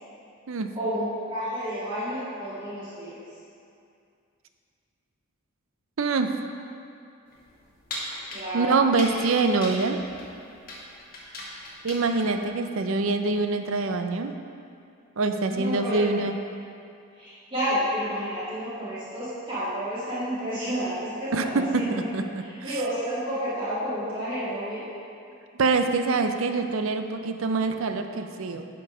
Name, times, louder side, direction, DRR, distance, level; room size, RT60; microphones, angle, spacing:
voice 1, 0.7-3.2 8.3-8.8 15.5-16.0 17.2-22.1 22.4-24.8, equal, 25° right, -12 dB, 2.0 m, -30 dB
voice 2, 6.0-6.3 8.5-10.0 11.8-14.3 15.2-16.4 21.3-22.8 25.5-28.7, right 3 dB, 70° right, 7 dB, 0.5 m, -25 dB
sound 1, 7.3-12.5, left 1 dB, 45° left, 1.5 m, -39 dB
10.5 x 4.5 x 5.0 m, 2.5 s
head